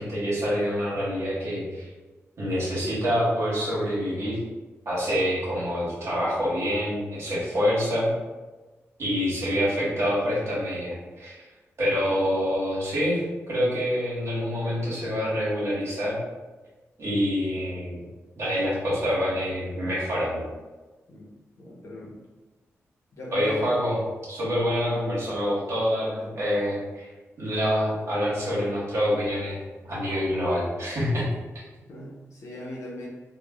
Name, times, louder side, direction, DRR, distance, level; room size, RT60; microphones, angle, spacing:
voice 1, 0.0-1.9 2.4-4.4 4.8-8.1 9.0-11.4 11.8-13.2 13.5-16.2 17.0-18.1 18.4-20.4 23.3-24.0 24.3-27.1 27.4-29.6 29.8-31.3, equal, 60° right, -7 dB, 1.3 m, -26 dB
voice 2, 21.6-22.2 23.1-23.7 24.7-25.0 26.1-26.4 31.8-33.1, left 1 dB, 75° left, -4 dB, 0.8 m, -39 dB
3.0 x 2.3 x 2.4 m, 1.2 s
wide cardioid pair, 95°, 5 cm